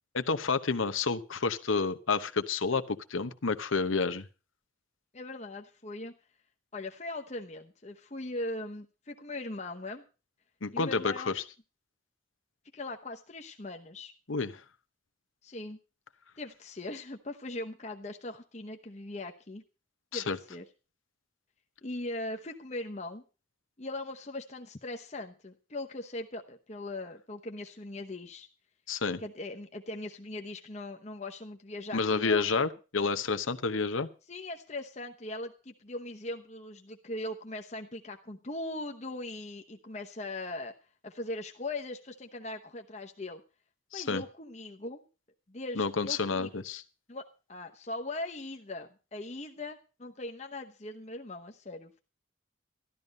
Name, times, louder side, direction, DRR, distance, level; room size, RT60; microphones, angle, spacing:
voice 1, 0.1-4.2 10.6-11.3 14.3-14.6 20.1-20.4 28.9-29.2 31.9-34.1 43.9-44.2 45.8-46.8, left 4 dB, 85° left, 10 dB, 1.0 m, -29 dB
voice 2, 5.1-6.1 6.7-10.1 10.7-11.4 12.7-14.1 15.4-15.8 16.4-19.6 20.1-20.6 21.8-23.2 23.8-28.5 29.2-32.6 34.3-40.7 41.0-43.4 43.9-45.0 45.5-46.6 47.1-52.0, left 2 dB, 35° left, 4 dB, 0.9 m, -40 dB
13.0 x 12.5 x 5.3 m, 0.33 s
head